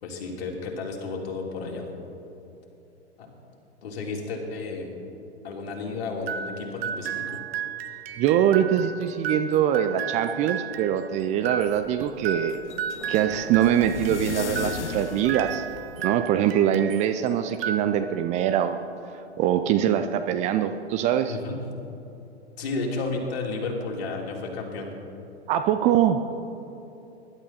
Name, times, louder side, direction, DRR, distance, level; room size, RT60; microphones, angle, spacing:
voice 1, 0.0-1.9 3.2-3.3 3.8-4.9 5.4-7.4 21.3-21.6 22.6-24.9, left 3 dB, 60° left, 0 dB, 3.2 m, -32 dB
sound 1, 6.3-17.1 17.5-18.4, right 8 dB, 60° right, 0.8 m, -34 dB
voice 2, 8.2-12.6 13.1-15.6 16.0-18.8 19.4-21.4 25.5-26.2, right 10 dB, 20° right, 8 dB, 0.4 m, -23 dB
sound 2, 11.2-16.3, left 6 dB, 80° left, 0.8 m, -37 dB
20.0 x 11.5 x 4.2 m, 2.9 s
figure-of-eight pair, 110°, 34 cm